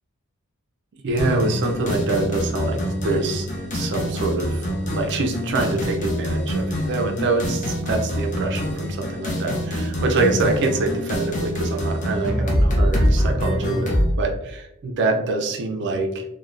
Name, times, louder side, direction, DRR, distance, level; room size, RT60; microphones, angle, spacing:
voice 1, 1.0-16.3, right 3 dB, 50° right, 3 dB, 0.4 m, -25 dB
sound 1, 1.2-14.1, equal, 35° left, 0.6 m, -25 dB
3.2 x 2.1 x 2.4 m, 0.86 s
head